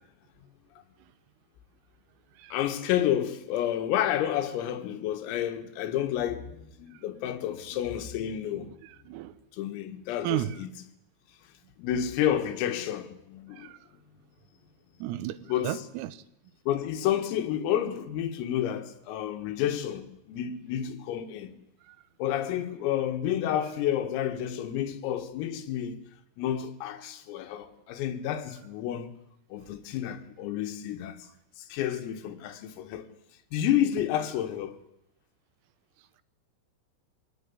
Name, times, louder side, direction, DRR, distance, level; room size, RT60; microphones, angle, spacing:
voice 1, 2.5-8.7 9.5-10.7 11.8-13.7 15.5-15.8 16.7-21.6 22.2-26.0 26.4-29.1 29.5-31.3 31.7-33.1 33.5-34.8, left 10 dB, 80° left, 4.3 m, -30 dB
voice 2, 10.2-10.6 13.6-13.8 15.0-15.4 15.6-16.2, right 14 dB, 85° right, 3.7 m, -33 dB
24.5 x 17.5 x 9.8 m
omnidirectional pair, 6.0 m